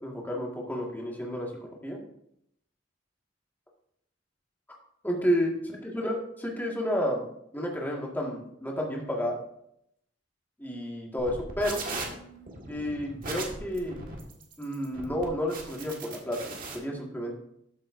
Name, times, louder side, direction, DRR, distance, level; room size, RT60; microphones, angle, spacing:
voice 1, 0.0-2.0 5.0-5.5 5.9-7.3 7.5-9.4 10.6-11.8 12.7-14.0 14.6-17.3, equal, 10° left, -2 dB, 1.8 m, -31 dB
sound 1, 11.2-16.7, right 3 dB, 50° right, 1.8 m, -38 dB
13.0 x 7.3 x 2.6 m, 0.74 s
head